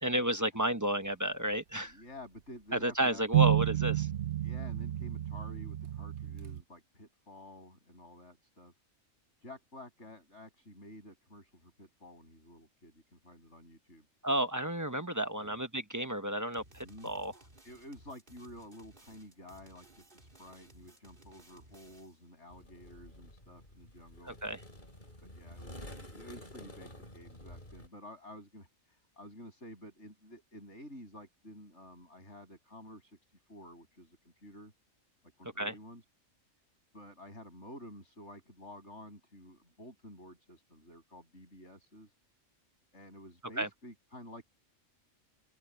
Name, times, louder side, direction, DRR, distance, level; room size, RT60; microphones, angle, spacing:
voice 1, 0.0-1.9 2.7-4.1 14.2-17.3 24.3-24.6 35.6-35.7 43.6-43.7, right 1 dB, 15° right, 1.0 m, -32 dB
voice 2, 1.8-3.2 4.4-8.7 9.4-14.1 15.4-15.6 16.8-17.1 17.6-24.4 25.2-33.2 33.5-34.7 35.4-36.0 36.9-42.1 42.9-44.4, left 1 dB, 60° left, 8.5 m, -51 dB
sound 1, 3.3-6.6, right 15 dB, 65° right, 1.0 m, -30 dB
sound 2, 16.5-22.3, right 1 dB, 40° right, 4.1 m, -59 dB
sound 3, 22.5-27.9, left 1 dB, 35° left, 6.9 m, -50 dB
omnidirectional pair, 1.4 m